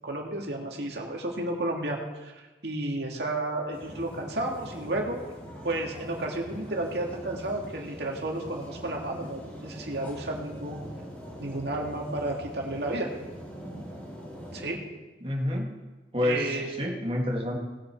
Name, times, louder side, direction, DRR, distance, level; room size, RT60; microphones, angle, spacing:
voice 1, 0.0-5.2 5.6-10.8 11.4-13.1 14.5-14.8 16.2-16.7, right 2 dB, 75° right, 0 dB, 2.1 m, -32 dB
sound 1, 3.7-14.7, equal, 10° left, 3.3 m, -42 dB
voice 2, 15.2-15.7 16.1-17.6, left 1 dB, 30° right, -1 dB, 2.0 m, -28 dB
19.0 x 7.0 x 4.7 m, 1.2 s
head